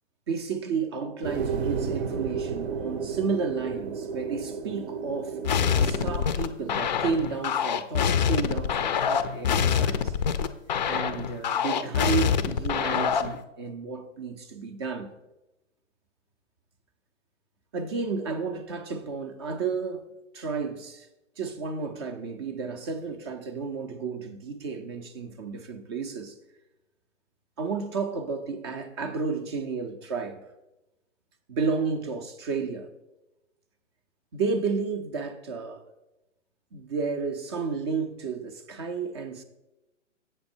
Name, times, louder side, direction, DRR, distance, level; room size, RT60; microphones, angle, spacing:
voice 1, 0.3-5.4 5.8-10.1 10.8-15.1 17.7-20.1 20.3-21.1 21.4-26.3 27.6-30.4 31.5-32.9 34.3-35.8 36.7-39.4, right 5 dB, 20° right, 0.5 m, -32 dB
sound 1, 1.2-6.2, right 6 dB, 55° right, 0.7 m, -32 dB
sound 2, 5.4-13.4, left 7 dB, 35° left, 0.4 m, -25 dB
7.8 x 7.0 x 4.3 m
hypercardioid pair, 145°, 38 cm